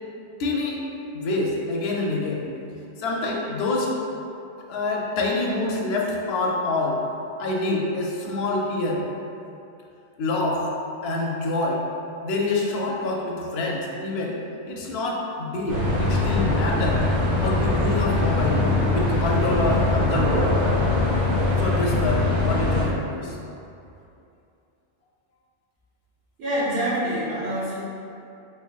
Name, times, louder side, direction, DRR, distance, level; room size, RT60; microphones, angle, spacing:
voice 1, 0.4-0.8 1.1-2.4 3.0-3.9 4.7-7.0 7.4-9.1 10.2-10.7 11.0-11.8 12.2-14.4 14.7-17.0 17.4-18.7 18.9-20.5 21.6-23.4, left 2 dB, 65° left, -1 dB, 0.7 m, -26 dB
sound 1, 15.7-22.9, left 2 dB, 75° right, 1.0 m, -22 dB
voice 2, 26.4-27.8, right 1 dB, 55° right, -10 dB, 1.2 m, -26 dB
3.4 x 3.3 x 2.3 m, 2.7 s
omnidirectional pair, 1.2 m